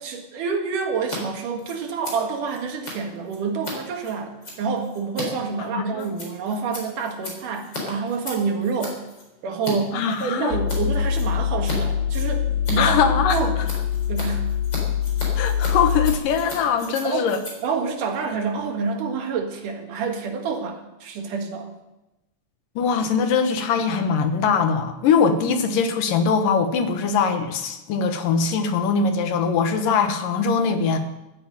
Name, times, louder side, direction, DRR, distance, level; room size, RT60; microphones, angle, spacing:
voice 1, 0.0-9.0 9.4-13.0 13.3-13.6 14.1-14.5 17.0-17.3 17.6-21.7, right 5 dB, 80° right, 4 dB, 3.3 m, -28 dB
Scissors, 1.0-1.2 1.4-9.7 10.1-10.8 11.1-11.8 12.0-18.8, left 2 dB, 35° left, 4.6 m, -37 dB
voice 2, 5.7-6.1 9.9-10.6 12.8-13.4 15.4-17.4 22.8-31.0, left 6 dB, 85° left, 7 dB, 3.0 m, -22 dB
sound 1, 10.5-16.1, left 8 dB, 70° left, 2.2 m, -24 dB
14.0 x 9.5 x 8.9 m, 0.96 s
omnidirectional pair, 3.7 m